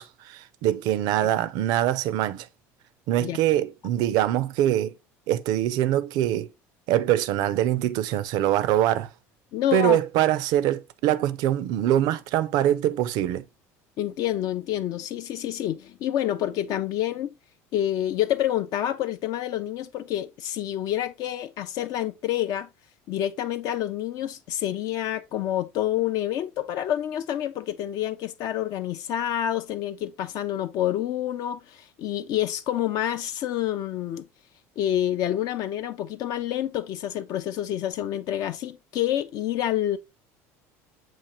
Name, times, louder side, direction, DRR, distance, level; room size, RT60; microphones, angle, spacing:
voice 1, 0.0-2.5 3.1-4.9 5.3-6.5 6.9-9.1 9.7-13.4, right 12 dB, 65° right, 0.4 m, -23 dB
voice 2, 9.5-10.0 14.0-17.3 17.7-22.7 23.1-34.3 34.8-40.0, left 12 dB, 60° left, 0.4 m, -28 dB
7.4 x 2.5 x 2.9 m
supercardioid pair, 95°, 7 cm